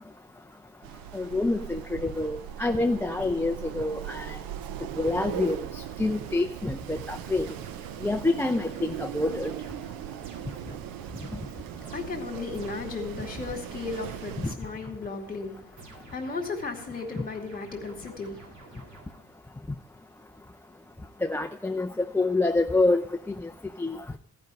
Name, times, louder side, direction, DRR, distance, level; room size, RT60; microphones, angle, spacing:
Wind, 0.8-14.6, right 11 dB, 90° right, 0.7 m, -39 dB
voice 1, 1.1-4.4 5.0-7.5 8.0-9.5 21.2-23.0 23.4-23.5 23.8-24.0, left 2 dB, 5° left, 0.5 m, -27 dB
sound 1, 7.5-13.1 13.9-15.2 15.8-19.5, right 4 dB, 60° right, 2.3 m, -51 dB
voice 2, 11.5-19.0, left 4 dB, 25° left, 2.5 m, -36 dB
14.0 x 5.3 x 9.1 m
cardioid pair, 125°, 34 cm